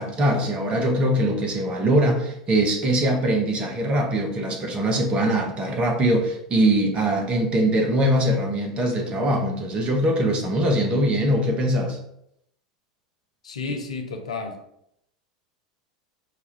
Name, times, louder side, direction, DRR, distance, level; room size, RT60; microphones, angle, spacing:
voice 1, 0.0-12.0, right 1 dB, 30° right, 2 dB, 1.0 m, -22 dB
voice 2, 13.4-14.6, left 4 dB, 75° left, 4 dB, 0.6 m, -31 dB
4.8 x 2.3 x 3.3 m, 0.75 s
figure-of-eight pair, 85°, 3 cm